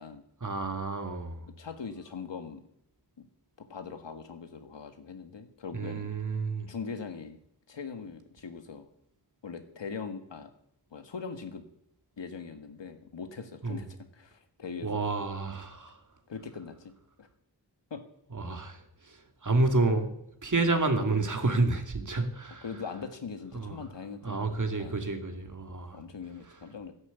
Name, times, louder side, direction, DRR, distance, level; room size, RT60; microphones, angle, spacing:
voice 1, 0.4-1.4 5.7-6.7 13.6-13.8 14.8-16.0 18.3-18.8 19.1-19.2 19.4-20.1 20.4-22.6 23.5-23.8 24.2-26.0, right 3 dB, 45° right, 6 dB, 2.3 m, -29 dB
voice 2, 1.6-2.6 3.2-3.3 3.7-6.1 6.7-7.4 7.7-8.9 9.4-10.5 10.9-11.6 12.2-13.9 14.1-14.9 16.3-16.9 17.2-17.3 17.9-18.0 22.6-25.0 25.9-26.9, left 5 dB, 80° left, 8 dB, 1.7 m, -41 dB
13.0 x 11.0 x 8.2 m, 0.75 s
wide cardioid pair, 80°, 43 cm